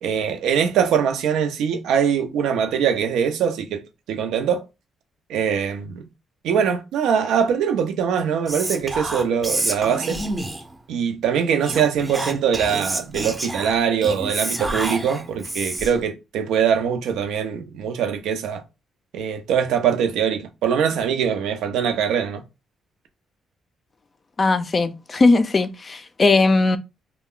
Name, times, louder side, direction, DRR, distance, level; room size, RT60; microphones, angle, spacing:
voice 1, 0.0-3.8 4.1-4.6 5.3-6.0 6.4-10.2 10.9-18.6 19.1-22.4, right 7 dB, 85° right, 0.6 m, -22 dB
Whispering, 8.5-10.8 11.6-16.0, right 2 dB, 15° right, 0.6 m, -28 dB
voice 2, 24.4-26.8, left 3 dB, 35° left, 0.4 m, -18 dB
2.3 x 2.2 x 3.6 m
cardioid pair, 90°, 0 cm